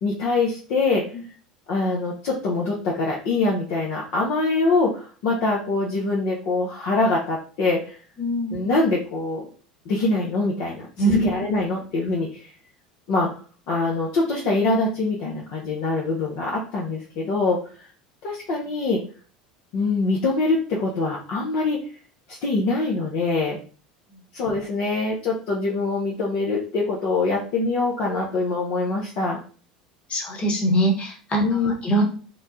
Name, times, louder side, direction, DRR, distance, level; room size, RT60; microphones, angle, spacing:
voice 1, 0.0-1.1 1.7-8.0 8.5-9.4 9.9-12.5 13.1-13.3 13.7-17.9 18.2-19.0 19.7-21.8 22.3-23.6 24.3-29.4 31.4-31.7, left 3 dB, 55° left, -2 dB, 0.6 m, -24 dB
voice 2, 8.2-8.6 11.0-11.5 30.1-32.0, right 1 dB, 30° left, 0 dB, 1.1 m, -23 dB
3.0 x 2.1 x 2.6 m, 0.40 s
figure-of-eight pair, 75°, 4 cm